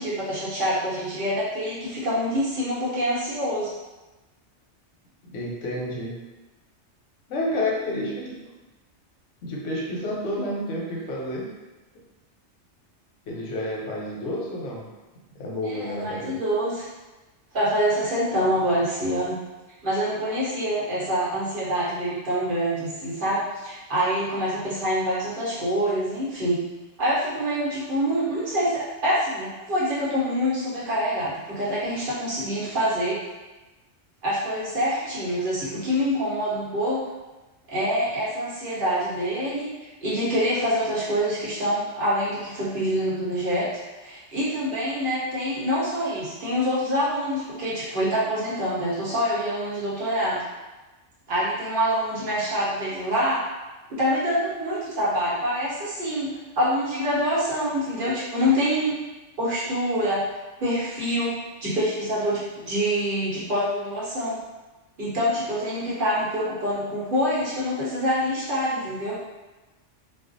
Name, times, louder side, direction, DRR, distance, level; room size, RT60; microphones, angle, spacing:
voice 1, 0.0-3.7 15.7-16.9 17.5-19.4 19.8-26.6 27.0-33.2 34.2-37.0 37.7-50.4 51.3-53.4 53.9-59.0 59.4-60.2 60.6-64.4 65.0-69.2, equal, 50° right, -9 dB, 0.9 m, -26 dB
voice 2, 5.3-6.2 7.3-8.4 9.4-11.6 13.3-14.9 15.3-16.4, left 1 dB, 90° left, -3 dB, 1.0 m, -30 dB
2.4 x 2.2 x 2.5 m, 1.1 s
omnidirectional pair, 1.2 m